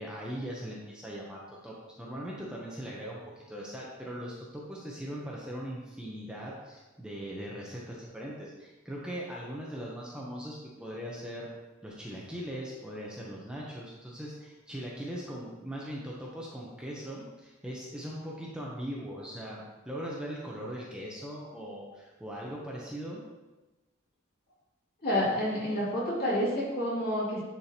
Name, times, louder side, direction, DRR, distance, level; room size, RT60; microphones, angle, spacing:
voice 1, 0.0-3.2 3.5-11.5 11.8-23.2, equal, 5° right, -5 dB, 0.8 m, -40 dB
voice 2, 25.0-27.4, left 1 dB, 45° left, -6 dB, 2.3 m, -29 dB
9.8 x 4.4 x 2.9 m, 1.1 s
head